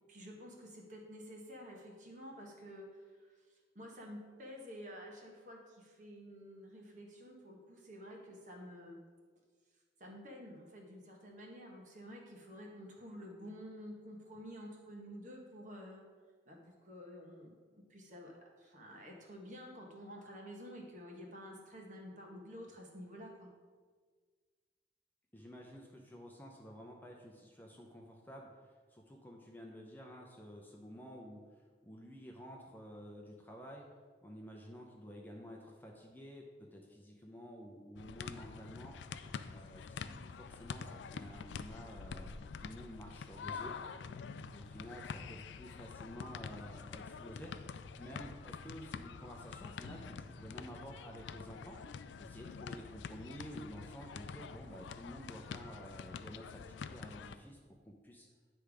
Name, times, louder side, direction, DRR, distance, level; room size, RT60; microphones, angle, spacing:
voice 1, 0.1-2.9 3.2-3.3 3.7-9.0 10.0-16.0 16.5-23.5, equal, 45° right, 0 dB, 1.3 m, -50 dB
voice 2, 25.3-31.4 31.8-33.9 34.2-36.4 36.7-39.0 39.5-43.7 44.5-51.8 52.2-57.6 57.9-58.3, equal, 10° left, 0 dB, 0.6 m, -51 dB
sound 1, 38.0-57.4, left 5 dB, 85° left, 0.4 m, -46 dB
10.0 x 3.4 x 4.9 m, 1.5 s
head